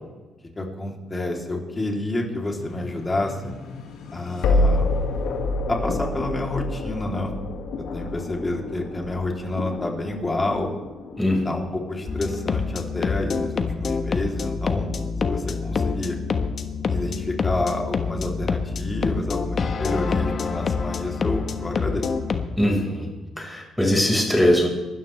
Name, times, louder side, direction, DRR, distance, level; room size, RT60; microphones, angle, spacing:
voice 1, 0.6-3.6 4.1-4.9 5.7-7.3 7.9-10.7 11.4-14.9 15.2-16.2 16.9-22.0, left 2 dB, 25° left, 0 dB, 3.2 m, -29 dB
sound 1, 2.6-13.6, left 2 dB, 80° left, 2.0 m, -29 dB
voice 2, 11.2-11.5 22.6-23.1 23.4-24.7, left 1 dB, 5° left, -1 dB, 5.0 m, -21 dB
sound 2, 12.1-22.4, left 5 dB, 45° left, 1.2 m, -26 dB
23.5 x 13.0 x 3.4 m, 1.2 s
cardioid pair, 90°, 0 cm